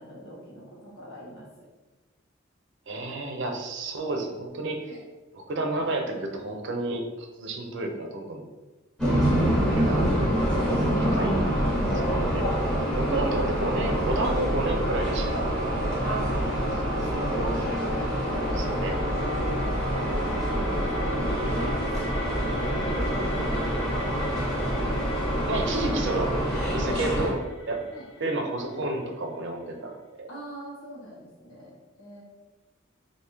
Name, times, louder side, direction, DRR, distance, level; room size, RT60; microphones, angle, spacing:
voice 1, 0.0-1.7 4.8-5.0 10.5-11.2 16.5-16.6 17.1-18.6 18.9-24.1 27.9-28.1 28.6-28.8 30.3-32.2, equal, 90° left, -5 dB, 1.2 m, -42 dB
voice 2, 2.9-5.0 5.5-8.5 9.6-10.1 11.0-11.4 11.9-12.4 13.0-15.5 17.4-17.5 18.6-19.0 25.5-26.4 26.7-27.4 27.7-27.8 28.2-30.3, right 2 dB, 60° right, 3 dB, 0.5 m, -30 dB
sound 1, 9.0-27.3, equal, 5° left, 0.9 m, -26 dB
sound 2, 17.7-29.4, left 2 dB, 65° left, 0.6 m, -43 dB
3.4 x 2.6 x 3.0 m, 1.2 s
head